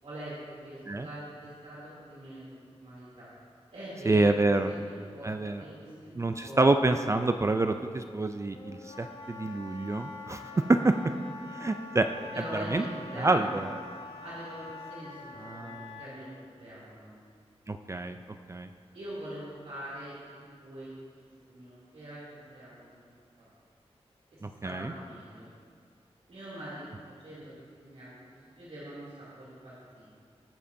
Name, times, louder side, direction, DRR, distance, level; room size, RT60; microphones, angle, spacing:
voice 1, 0.0-3.3 3.7-6.6 6.9-7.0 10.5-10.7 12.3-13.6 14.2-17.1 18.9-23.1 24.3-25.5 26.3-30.2, right 1 dB, 80° right, -10 dB, 2.9 m, -43 dB
voice 2, 4.1-4.7 5.2-5.6 6.2-10.9 11.5-12.1 12.5-12.8 13.2-13.7 15.4-16.0 17.7-18.2 18.5-18.7 24.4-24.9, right 2 dB, 25° right, 7 dB, 0.4 m, -27 dB
Wind instrument woodwind instrument, 8.5-16.1, left 4 dB, 70° left, 1.5 m, -45 dB
19.0 x 7.6 x 2.7 m, 2.1 s
wide cardioid pair, 90°, 11 cm